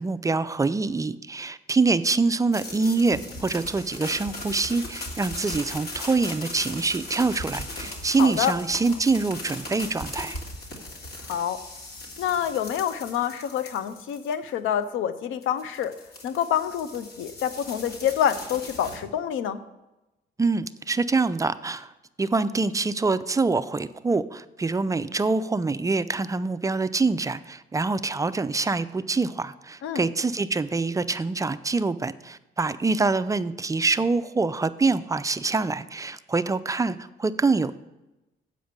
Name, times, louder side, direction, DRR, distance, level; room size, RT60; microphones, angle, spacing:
voice 1, 0.0-10.4 20.4-21.9 22.2-37.8, right 3 dB, 15° right, 13 dB, 0.4 m, -25 dB
sound 1, 2.5-14.5 15.4-19.0, left 2 dB, 50° left, 2.1 m, -38 dB
voice 2, 8.2-8.6 11.3-11.6 12.2-16.0 16.2-19.6 29.8-30.0, left 9 dB, 80° left, 12 dB, 0.6 m, -27 dB
7.9 x 5.1 x 6.7 m, 0.99 s
cardioid pair, 90°, 20 cm